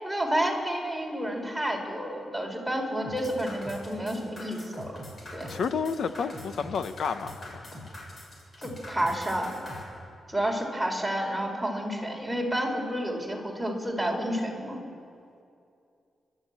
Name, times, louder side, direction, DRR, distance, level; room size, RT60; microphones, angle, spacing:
voice 1, 0.0-4.9 5.3-5.5 8.6-9.5 10.3-14.8, right 1 dB, ahead, -1 dB, 4.4 m, -30 dB
sound 1, 3.0-9.8, left 1 dB, 35° left, 6.4 m, -42 dB
voice 2, 5.5-7.7, left 6 dB, 70° left, 10 dB, 1.1 m, -30 dB
29.5 x 12.5 x 8.9 m, 2.5 s
wide cardioid pair, 115°, 0 cm